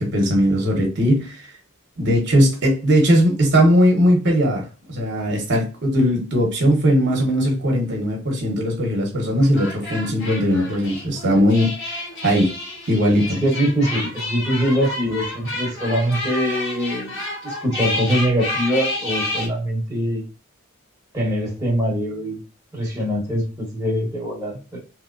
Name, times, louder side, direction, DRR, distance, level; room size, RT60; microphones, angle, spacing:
voice 1, 0.0-1.5 2.0-12.5 12.9-13.4, equal, 50° right, 0 dB, 0.9 m, -19 dB
sound 1, 9.4-19.5, left 2 dB, 50° left, 1.5 m, -29 dB
voice 2, 13.4-20.2 21.1-22.4 22.7-24.8, equal, 15° right, -5 dB, 1.0 m, -23 dB
3.0 x 2.9 x 2.5 m, 0.34 s
head